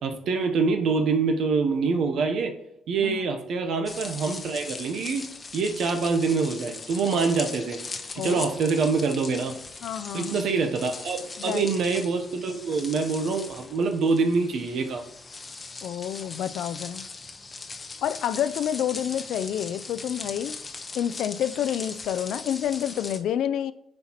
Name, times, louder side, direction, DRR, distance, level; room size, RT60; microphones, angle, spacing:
voice 1, 0.0-2.5 2.9-5.2 5.5-7.8 8.2-9.6 10.1-15.1, right 4 dB, 70° right, 0.7 m, -25 dB
sound 1, 3.9-23.2, left 3 dB, 30° left, 0.6 m, -39 dB
voice 2, 9.8-10.3 11.4-11.6 15.8-17.0 18.0-20.6 20.9-23.7, left 10 dB, 80° left, 0.3 m, -29 dB
9.4 x 4.4 x 2.9 m
cardioid pair, 90°, 0 cm